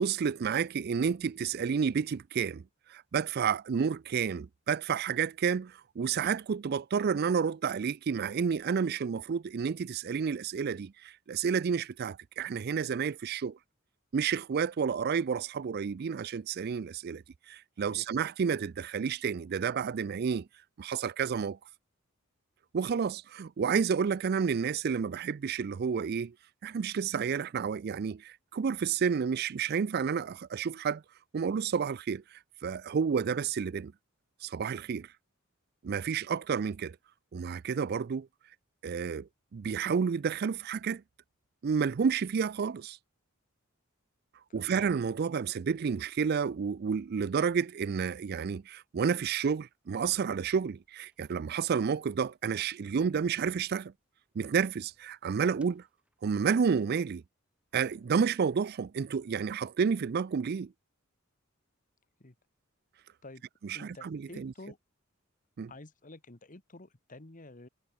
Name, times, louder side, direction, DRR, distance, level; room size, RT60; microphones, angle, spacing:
voice 1, 0.0-2.6 2.9-13.6 14.1-20.5 20.8-21.6 22.7-26.3 26.6-31.0 31.3-33.9 34.4-35.1 35.8-37.0 37.3-38.3 38.8-41.0 41.6-43.0 44.5-53.9 54.4-55.8 56.2-57.2 57.7-60.7 63.6-64.5 65.6-65.7, right 6 dB, 50° right, 0.4 m, -30 dB
voice 2, 17.8-18.1 44.5-44.7 62.2-62.3 63.2-63.4 63.7-64.8 65.7-67.7, left 2 dB, 40° left, 1.6 m, -50 dB
sound 1, 49.8-53.9 54.5-57.2 57.5-58.3, right 1 dB, 5° right, 6.8 m, -67 dB
head